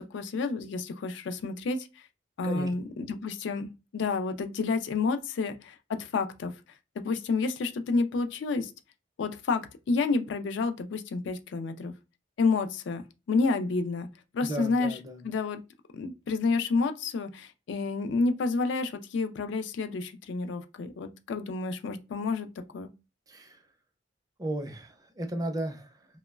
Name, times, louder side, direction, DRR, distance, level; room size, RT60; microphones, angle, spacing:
voice 1, 0.0-2.0 2.4-6.5 7.0-8.7 9.2-11.9 12.4-13.0 13.3-14.1 14.3-15.0 15.2-15.6 15.9-22.5 22.7-22.9, left 4 dB, 70° left, 0.4 m, -29 dB
voice 2, 14.4-15.2 23.3-23.6 24.4-26.1, right 1 dB, 20° right, 0.4 m, -35 dB
2.9 x 2.0 x 2.2 m
head